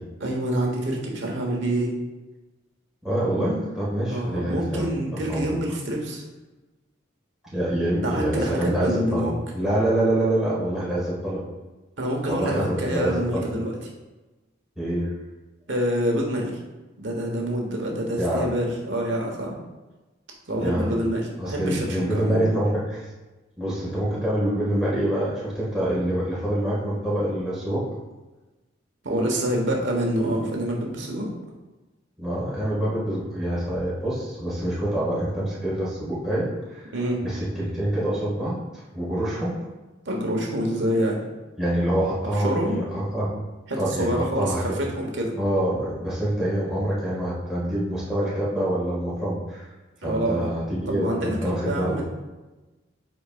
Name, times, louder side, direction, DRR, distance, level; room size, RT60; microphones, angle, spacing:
voice 1, 0.2-1.9 4.1-6.2 8.0-9.3 12.0-13.7 15.7-16.5 17.0-19.5 20.5-22.5 29.0-31.3 36.9-37.2 40.0-41.2 42.4-42.8 43.7-45.3 50.0-50.5 50.9-52.0, right 1 dB, 70° right, 0 dB, 1.3 m, -26 dB
voice 2, 3.0-5.5 7.5-11.4 12.3-13.5 14.8-15.1 18.2-18.5 20.6-20.9 21.4-23.1 23.6-27.9 32.2-36.9 37.2-39.6 41.6-43.3 43.8-44.6 45.4-49.7 50.0-52.0, right 1 dB, 5° right, -9 dB, 1.9 m, -26 dB
8.5 x 4.4 x 2.5 m, 1.1 s
head